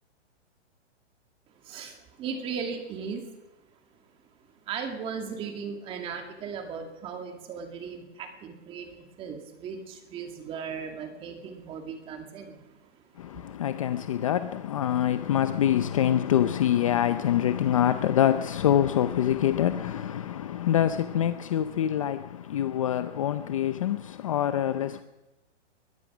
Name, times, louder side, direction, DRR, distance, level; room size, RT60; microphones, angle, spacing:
voice 1, 1.6-3.3 4.7-12.9 13.3-13.5, right 6 dB, 15° right, 2.3 m, -37 dB
voice 2, 13.2-25.0, left 10 dB, 30° left, 0.6 m, -25 dB
22.0 x 20.0 x 6.1 m
hypercardioid pair, 165°, 35 cm